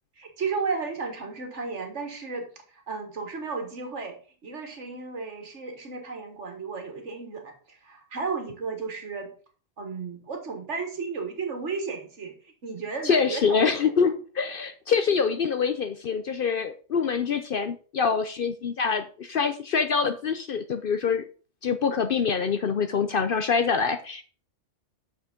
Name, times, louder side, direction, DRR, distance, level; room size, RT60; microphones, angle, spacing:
voice 1, 0.2-4.2 4.4-9.3 9.8-12.3 12.6-13.9, right 4 dB, 65° right, 4 dB, 1.9 m, -34 dB
voice 2, 13.0-21.3 21.6-24.2, left 6 dB, 55° left, 9 dB, 0.7 m, -25 dB
6.5 x 5.8 x 5.1 m, 0.40 s
omnidirectional pair, 1.3 m